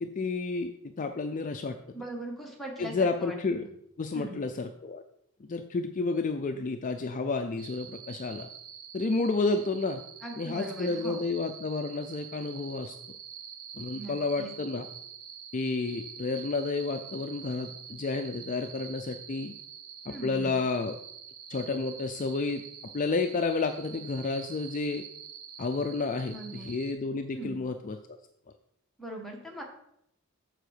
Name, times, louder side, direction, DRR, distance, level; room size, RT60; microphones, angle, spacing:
voice 1, 0.0-1.8 2.8-3.6 4.0-5.0 5.4-8.5 8.9-10.0 10.4-13.0 13.7-14.9 15.5-19.6 20.1-20.9 21.5-25.0 25.6-28.2, left 3 dB, 40° left, 7 dB, 0.4 m, -31 dB
voice 2, 1.9-3.7 4.1-4.4 10.2-11.2 13.9-14.5 20.1-20.6 26.3-26.7 27.3-27.6 29.0-29.6, right 1 dB, ahead, -2 dB, 1.7 m, -40 dB
sound 1, 7.6-26.9, right 8 dB, 75° right, 1.0 m, -46 dB
7.8 x 4.6 x 6.6 m, 0.74 s
head